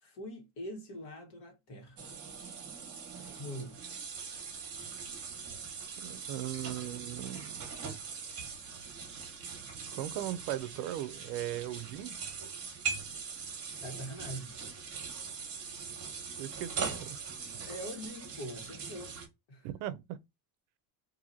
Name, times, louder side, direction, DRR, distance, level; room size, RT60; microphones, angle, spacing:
voice 1, 0.0-2.2 3.2-3.8 13.8-14.6 17.6-19.2 19.5-19.7, equal, 55° left, 1.5 m, -43 dB
sound 1, 2.0-19.3, right 6 dB, 30° right, 1.1 m, -41 dB
voice 2, 6.0-7.6 9.9-12.1 16.4-17.4 19.6-20.2, right 13 dB, 65° right, 0.5 m, -38 dB
2.8 x 2.7 x 2.5 m
cardioid pair, 130°, 48 cm